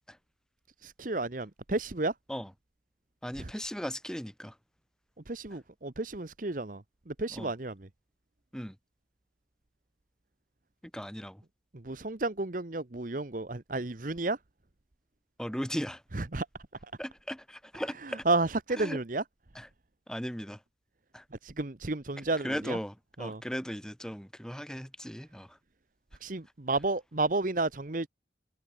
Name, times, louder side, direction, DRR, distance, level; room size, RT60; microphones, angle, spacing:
voice 1, 0.8-2.1 3.4-3.5 5.3-7.9 11.7-14.4 16.1-16.5 18.3-19.2 21.4-22.8 23.2-23.4 26.2-28.1, right 2 dB, 45° right, 1.0 m, -32 dB
voice 2, 3.2-4.6 7.3-7.5 8.5-8.8 10.9-11.4 15.4-16.0 17.0-18.2 18.8-19.0 19.6-19.7 20.1-20.6 21.1-21.2 22.4-25.6, equal, 5° left, 3.8 m, -37 dB
open air
head